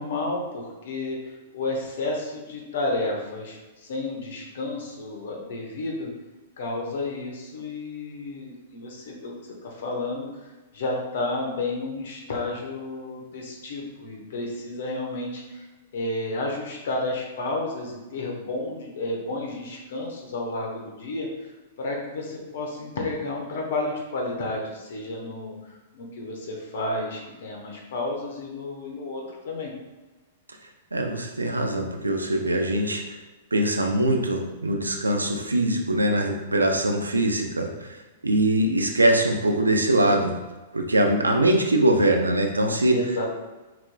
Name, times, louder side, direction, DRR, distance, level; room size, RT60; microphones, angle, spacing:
voice 1, 0.0-6.1 6.6-9.3 9.6-15.6 15.9-21.5 21.8-29.7 42.9-43.3, left 2 dB, 60° left, 0 dB, 1.1 m, -31 dB
voice 2, 30.9-33.0 33.5-38.0 38.2-40.4 40.7-43.0, right 1 dB, 85° right, 3 dB, 0.5 m, -22 dB
5.8 x 3.1 x 2.3 m, 1.2 s
figure-of-eight pair, 105°, 0 cm